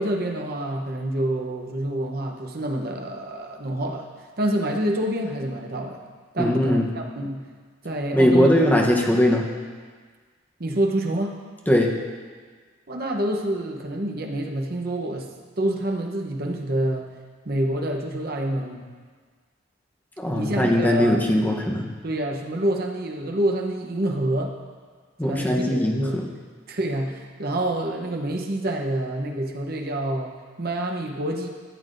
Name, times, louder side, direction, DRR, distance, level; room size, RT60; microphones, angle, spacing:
voice 1, 0.0-4.1 4.4-6.0 6.3-7.4 7.8-8.5 10.6-11.4 12.9-15.3 15.6-17.1 17.4-18.8 20.3-21.2 22.0-24.5 25.2-26.3 26.7-31.5, right 1 dB, 55° right, 2 dB, 0.9 m, -27 dB
voice 2, 6.4-6.9 8.1-9.5 11.7-11.9 20.2-21.9 25.2-26.3, left 1 dB, 10° left, -1 dB, 0.9 m, -20 dB
13.5 x 8.1 x 2.6 m, 1.5 s
head